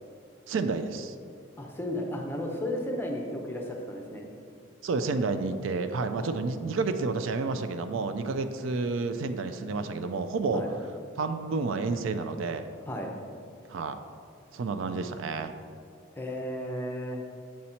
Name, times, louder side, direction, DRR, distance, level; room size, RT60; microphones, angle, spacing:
voice 1, 0.5-1.1 4.8-10.6 11.2-12.7 13.7-14.0 14.5-15.5, right 4 dB, 70° right, 9 dB, 0.4 m, -30 dB
voice 2, 1.6-4.2 6.2-6.3 10.5-10.7 12.9-13.1 16.1-17.2, left 1 dB, 10° left, 0 dB, 0.6 m, -34 dB
7.5 x 4.1 x 4.3 m, 2.3 s
head